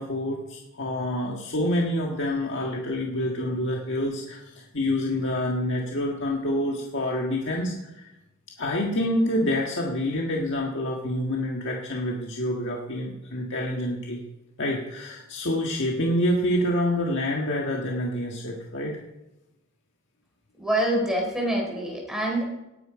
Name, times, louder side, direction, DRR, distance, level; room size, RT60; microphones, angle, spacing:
voice 1, 0.0-8.1 8.6-14.2 14.6-19.0, left 1 dB, 55° left, -1 dB, 1.7 m, -27 dB
voice 2, 20.6-22.5, right 1 dB, ahead, -1 dB, 4.1 m, -25 dB
18.0 x 9.6 x 5.1 m, 0.95 s
head